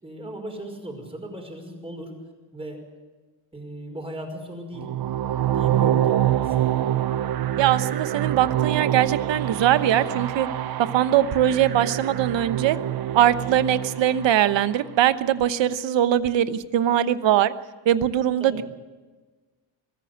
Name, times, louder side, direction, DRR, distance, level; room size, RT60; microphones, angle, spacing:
voice 1, 0.0-2.1 2.5-2.8 3.5-4.9 5.5-6.7 18.4-18.6, equal, 10° right, 3 dB, 5.4 m, -37 dB
sound 1, 4.7-14.9, right 11 dB, 50° right, 0.8 m, -26 dB
voice 2, 7.6-10.5 10.9-12.8 13.1-17.5 17.8-18.6, right 11 dB, 70° right, 13 dB, 1.1 m, -21 dB
22.5 x 14.5 x 8.1 m, 1.3 s
cardioid pair, 115°, 46 cm